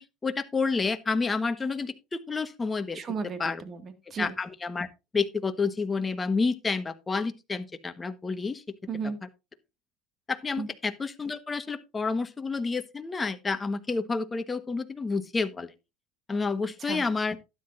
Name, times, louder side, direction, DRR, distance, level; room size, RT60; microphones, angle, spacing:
voice 1, 0.0-1.9 2.3-3.0 3.4-3.6 4.2-4.9 5.1-8.6 10.3-15.7 16.3-17.4, left 4 dB, 20° left, 1.2 m, -29 dB
voice 2, 2.9-4.3 8.9-9.2 10.6-10.7 16.8-17.0, right 5 dB, 35° right, 1.9 m, -34 dB
12.5 x 9.8 x 2.6 m
supercardioid pair, 105°, 0 cm